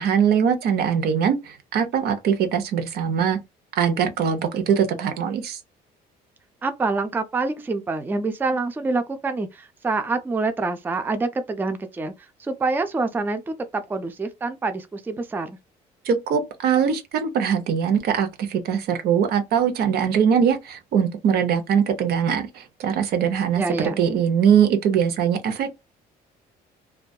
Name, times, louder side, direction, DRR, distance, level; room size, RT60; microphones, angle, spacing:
voice 1, 0.0-3.4 3.8-5.6 16.0-25.7, right 7 dB, 70° right, 0.6 m, -22 dB
voice 2, 6.6-12.1 12.4-15.6 23.6-24.0, right 3 dB, 10° right, 0.3 m, -26 dB
2.6 x 2.3 x 2.2 m
cardioid pair, 110°, 17 cm